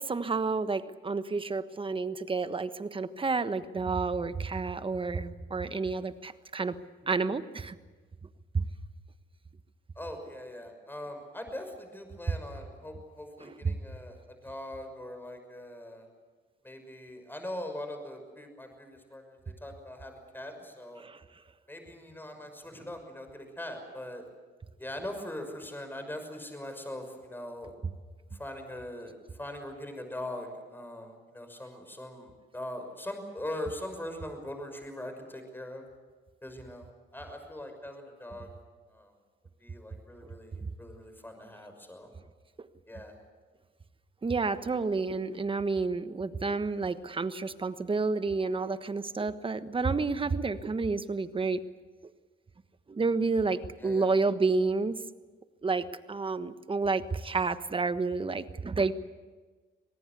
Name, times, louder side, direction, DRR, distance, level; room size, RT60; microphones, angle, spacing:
voice 1, 0.0-6.7 7.1-7.7 8.5-8.6 13.4-13.8 21.0-21.2 40.6-40.7 44.2-51.6 52.9-55.0 55.6-58.9, right 4 dB, 25° right, 12 dB, 1.3 m, -30 dB
voice 2, 10.0-16.1 16.6-21.0 21.7-24.2 24.8-27.7 28.3-35.9 36.4-38.5 38.9-39.1 39.6-42.1 42.9-43.2 53.5-54.1, left 1 dB, 10° left, 6 dB, 5.9 m, -41 dB
25.5 x 19.0 x 8.3 m, 1.3 s
cardioid pair, 90°, 20 cm